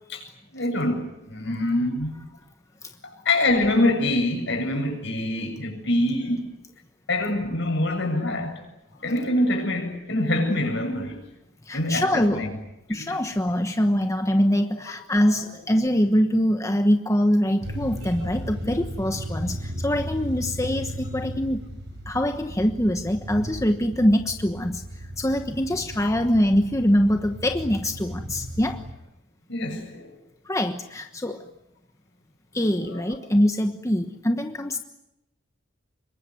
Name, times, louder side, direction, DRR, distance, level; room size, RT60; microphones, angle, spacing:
voice 1, 0.5-2.3 3.0-6.5 7.1-8.6 9.0-11.3 11.7-12.5 13.1-13.2 15.3-15.4 18.2-18.3 29.5-30.1 32.9-33.0, left 1 dB, 65° left, 7.6 m, -25 dB
voice 2, 11.7-12.4 12.9-21.6 22.1-28.8 30.4-31.4 32.5-34.8, equal, 15° left, 1.2 m, -23 dB
sound 1, 17.6-28.9, equal, 60° right, 4.6 m, -36 dB
27.0 x 23.0 x 9.5 m
head